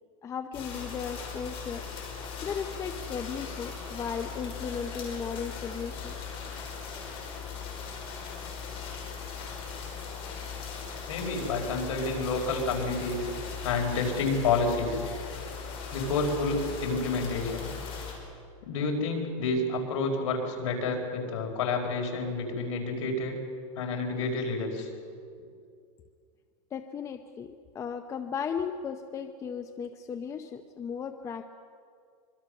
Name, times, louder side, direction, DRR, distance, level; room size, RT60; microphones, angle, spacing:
voice 1, 0.2-1.8 2.4-6.2 26.7-31.4, left 6 dB, 20° left, 8 dB, 0.7 m, -36 dB
sound 1, 0.5-18.1, left 6 dB, 35° left, 5.4 m, -39 dB
voice 2, 11.1-13.3 13.6-15.1 15.9-17.7 18.6-23.4 23.7-24.9, left 3 dB, 75° left, 2 dB, 5.0 m, -29 dB
25.0 x 23.0 x 6.5 m, 2.3 s
supercardioid pair, 155°, 17 cm